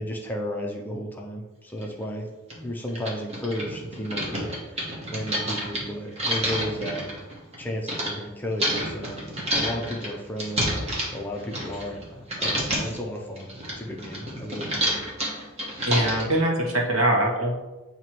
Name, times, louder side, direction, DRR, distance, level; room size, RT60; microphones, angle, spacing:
voice 1, 0.0-2.3 2.6-7.0 7.6-9.2 9.5-13.5 13.8-15.0, equal, 10° left, -1 dB, 0.5 m, -33 dB
sound 1, 1.8-1.9 2.5-2.6 2.9-8.1 8.6-12.0 12.3-13.0 13.4-16.4, equal, 30° right, 1.3 m, -29 dB
voice 2, 15.8-17.5, right 1 dB, 75° right, -1 dB, 1.3 m, -22 dB
7.6 x 2.9 x 4.5 m, 1.1 s
head